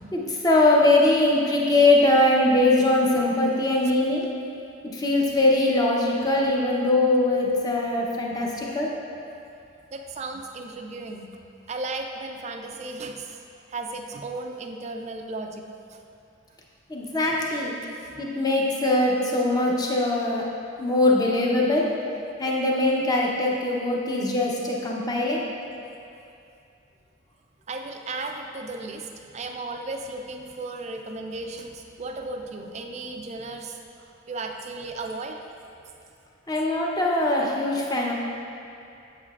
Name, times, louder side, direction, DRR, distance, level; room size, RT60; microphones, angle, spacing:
voice 1, 0.0-4.3 4.9-8.9 16.9-17.7 18.2-20.4 20.8-21.9 22.4-25.4 36.5-38.1, left 2 dB, 20° left, -2 dB, 0.6 m, -22 dB
voice 2, 9.9-11.3 11.7-13.4 13.7-16.0 17.2-17.3 18.0-18.1 27.7-33.8 34.3-35.4, right 3 dB, 30° right, 4 dB, 0.4 m, -35 dB
7.4 x 7.2 x 2.4 m, 2.6 s
head